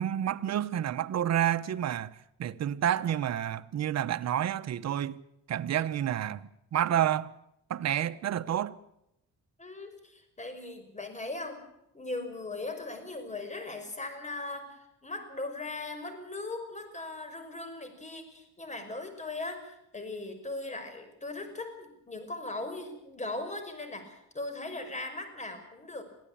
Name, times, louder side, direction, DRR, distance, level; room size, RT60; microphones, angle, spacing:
voice 1, 0.0-5.2 5.5-7.3 7.7-8.8, right 10 dB, 60° right, 1.0 m, -29 dB
voice 2, 9.6-11.6 11.9-26.0, left 2 dB, 25° left, 5.5 m, -39 dB
23.0 x 15.0 x 8.7 m
cardioid pair, 90°, 30 cm